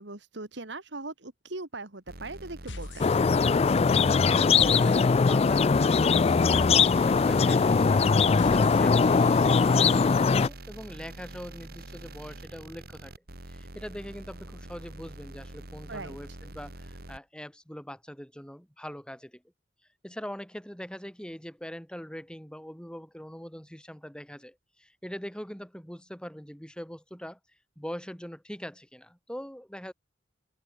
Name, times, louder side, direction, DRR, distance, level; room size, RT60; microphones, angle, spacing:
voice 1, 0.0-3.2 15.9-16.2, right 2 dB, 75° right, 2.6 m, -40 dB
sound 1, 2.1-17.2, right 1 dB, 60° right, 3.0 m, -45 dB
sound 2, 2.7-3.6 3.8-9.9, left 2 dB, 90° left, 2.2 m, -46 dB
sound 3, 3.0-10.5, left 5 dB, 35° left, 0.4 m, -21 dB
voice 2, 4.1-13.1 13.5-19.4 20.0-27.4 27.8-29.9, equal, 5° left, 6.3 m, -42 dB
head